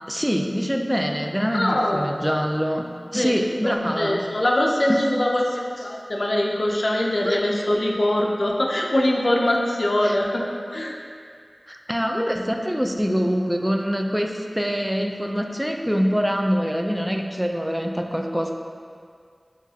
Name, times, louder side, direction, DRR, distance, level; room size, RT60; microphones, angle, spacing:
voice 1, 0.1-2.9 3.1-4.2 4.9-5.0 7.2-7.4 10.0-10.2 11.7-18.5, equal, 5° right, 2 dB, 0.4 m, -24 dB
voice 2, 1.5-2.1 3.1-10.5 10.7-11.0, left 1 dB, 65° left, 0 dB, 0.5 m, -23 dB
7.0 x 2.4 x 2.8 m, 2.1 s
wide cardioid pair, 45°, 0 cm